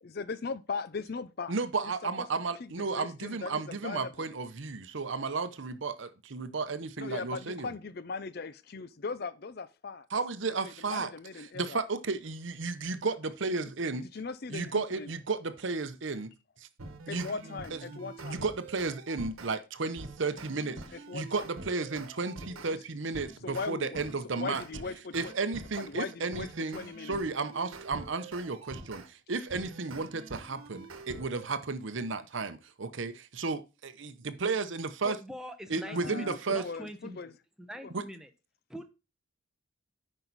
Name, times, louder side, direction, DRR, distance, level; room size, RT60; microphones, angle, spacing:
voice 1, 0.0-1.5 1.8-2.3 2.6-2.7 3.0-4.3 7.0-10.1 10.6-11.8 14.1-15.1 16.8-18.4 20.9-21.5 22.5-22.8 23.4-24.0 24.3-25.3 25.8-27.2 35.7-37.3 37.8-37.9, left 4 dB, 50° left, 0.5 m, -39 dB
voice 2, 1.5-7.7 10.1-11.1 11.5-14.1 14.5-16.3 16.6-16.7 17.1-24.6 25.1-35.2 35.7-36.6 37.9-38.0, right 4 dB, 65° right, 0.8 m, -33 dB
sound 1, 16.8-19.5 20.0-22.7 23.1-29.1 29.5-31.5, right 2 dB, 85° right, 1.2 m, -46 dB
voice 3, 35.0-37.2 37.6-38.3 38.7-38.9, equal, 5° right, 0.9 m, -43 dB
9.0 x 5.4 x 4.1 m
head